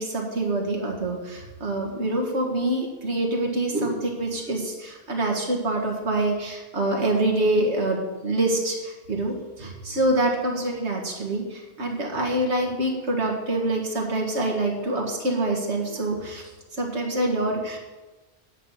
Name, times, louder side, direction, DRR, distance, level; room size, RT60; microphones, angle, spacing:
voice 1, 0.0-17.8, right 1 dB, 90° right, 0 dB, 2.2 m, -26 dB
9.9 x 5.8 x 8.1 m, 1.2 s
omnidirectional pair, 1.1 m